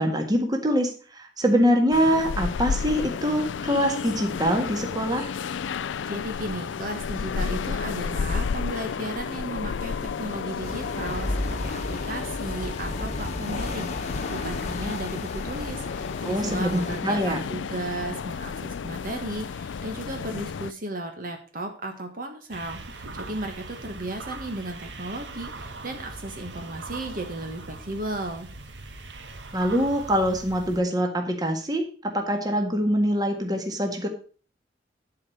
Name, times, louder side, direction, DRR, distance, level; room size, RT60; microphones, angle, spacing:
voice 1, 0.0-5.3 16.2-17.4 29.5-34.1, equal, 20° right, 4 dB, 1.7 m, -24 dB
sound 1, 1.9-20.7, left 6 dB, 90° left, 0.4 m, -32 dB
voice 2, 6.0-28.5, right 2 dB, 50° right, 4 dB, 1.5 m, -35 dB
sound 2, 10.6-17.0, left 1 dB, 40° left, 1.3 m, -34 dB
sound 3, 22.5-30.8, right 3 dB, 75° right, 1.3 m, -40 dB
11.5 x 5.0 x 6.5 m, 0.40 s
head